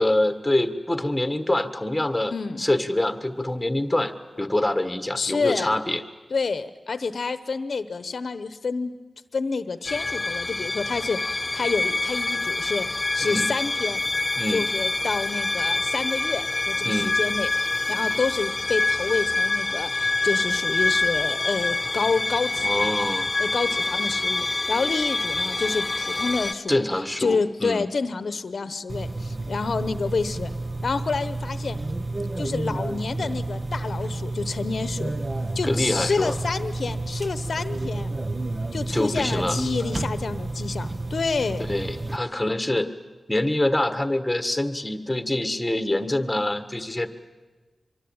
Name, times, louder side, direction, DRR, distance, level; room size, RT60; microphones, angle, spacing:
voice 1, 0.0-2.3 2.6-4.1 4.4-6.0 13.2-13.5 14.4-14.7 16.8-17.1 22.6-23.3 26.7-27.9 35.6-36.3 38.9-39.6 41.7-42.9 43.3-47.1, left 1 dB, 10° left, 8 dB, 1.6 m, -25 dB
voice 2, 2.3-2.7 5.2-5.8 6.3-8.9 9.3-14.0 14.5-17.5 17.9-22.9 23.4-26.8 27.2-30.5 30.8-31.8 32.4-35.1 35.5-38.1 38.7-41.7, left 4 dB, 65° left, 12 dB, 0.9 m, -28 dB
sound 1, 9.9-26.5, left 2 dB, 30° left, 1.1 m, -26 dB
sound 2, 28.9-42.2, right 2 dB, 30° right, 0.9 m, -30 dB
24.5 x 23.5 x 8.8 m, 1.3 s
wide cardioid pair, 100°, 0 cm